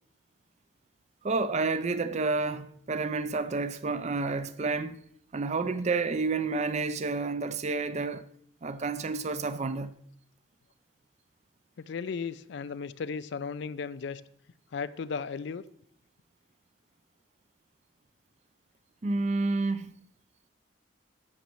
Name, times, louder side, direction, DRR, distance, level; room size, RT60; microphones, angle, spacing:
voice 1, 1.2-5.0 5.3-8.3 8.6-9.9 19.0-19.9, right 3 dB, 35° right, 0.5 m, -30 dB
voice 2, 11.8-14.2 14.7-15.6, left 5 dB, 65° left, 0.4 m, -35 dB
15.0 x 6.3 x 3.1 m
head